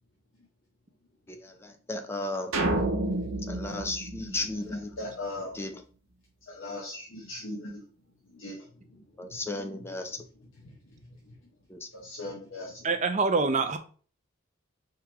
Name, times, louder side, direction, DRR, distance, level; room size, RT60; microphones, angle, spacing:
voice 1, 1.3-2.5 3.5-5.0 5.5-5.8 9.2-10.2 11.7-11.8, left 2 dB, 10° left, 0.5 m, -34 dB
sound 1, 2.5-5.0, right 2 dB, 80° right, 1.0 m, -30 dB
voice 2, 4.7-5.6 6.4-7.9 8.2-9.4 10.6-11.5 11.9-12.9, left 1 dB, 70° left, 1.0 m, -40 dB
voice 3, 12.8-13.8, right 4 dB, 35° right, 0.5 m, -25 dB
4.6 x 3.8 x 2.9 m
head